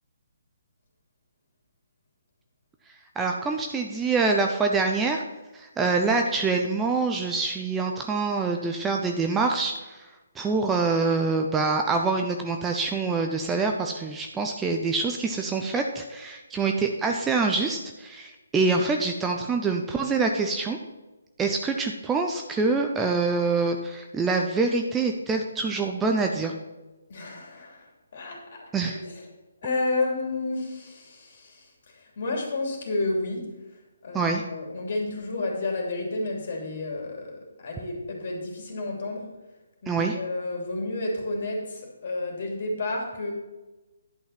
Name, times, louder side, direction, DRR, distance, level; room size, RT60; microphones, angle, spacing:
voice 1, 3.2-5.2 5.5-10.0 10.4-20.8 21.4-26.5 28.7-29.0 34.1-34.4 39.9-40.2, right 4 dB, 10° right, 3 dB, 0.7 m, -25 dB
voice 2, 27.1-29.2 29.6-33.5 34.0-39.3 39.8-43.3, left 2 dB, 50° left, 0 dB, 2.9 m, -31 dB
11.0 x 5.6 x 5.8 m, 1.1 s
figure-of-eight pair, 140°, 0 cm